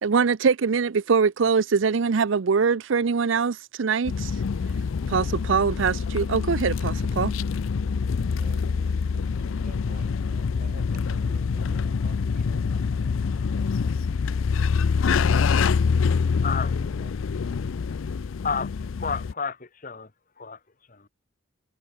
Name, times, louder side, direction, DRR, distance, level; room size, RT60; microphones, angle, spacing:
voice 1, 0.0-4.4 5.1-7.3, right 5 dB, 75° right, 0.5 m, -23 dB
sound 1, 4.1-19.3, left 5 dB, 85° left, 0.4 m, -25 dB
voice 2, 8.4-12.7 16.4-17.6, right 2 dB, 45° right, 3.4 m, -51 dB
voice 3, 16.4-16.7 18.4-18.7 19.0-20.1 20.4-20.6 20.9-21.1, left 5 dB, 40° left, 1.2 m, -30 dB
head